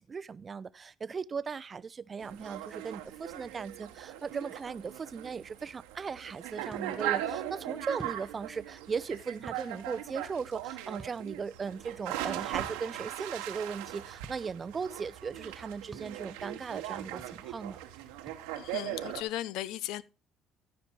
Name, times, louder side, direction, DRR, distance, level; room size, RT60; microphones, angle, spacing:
voice 1, 0.0-17.8, right 5 dB, 40° right, 0.5 m, -38 dB
sound 1, 2.2-19.2, right 13 dB, 80° right, 1.1 m, -39 dB
sound 2, 6.7-6.8 8.0-8.2 9.5-9.6 11.0-11.2 12.6-12.7 14.2-14.4 15.9-16.1 17.2-17.3 18.2-18.4, right 3 dB, 20° right, 1.5 m, -47 dB
voice 2, 18.6-20.0, left 14 dB, 70° left, 0.4 m, -36 dB
14.0 x 5.2 x 4.6 m
hypercardioid pair, 55°, 0 cm